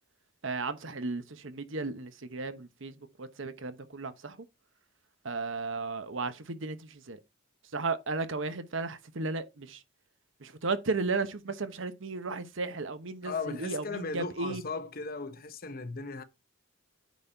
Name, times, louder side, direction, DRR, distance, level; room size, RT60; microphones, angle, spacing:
voice 1, 0.4-4.5 5.2-7.2 7.7-9.8 10.4-14.6, right 3 dB, 65° right, 1.0 m, -35 dB
voice 2, 13.2-16.2, left 4 dB, 45° left, 1.0 m, -37 dB
9.3 x 4.2 x 4.5 m
head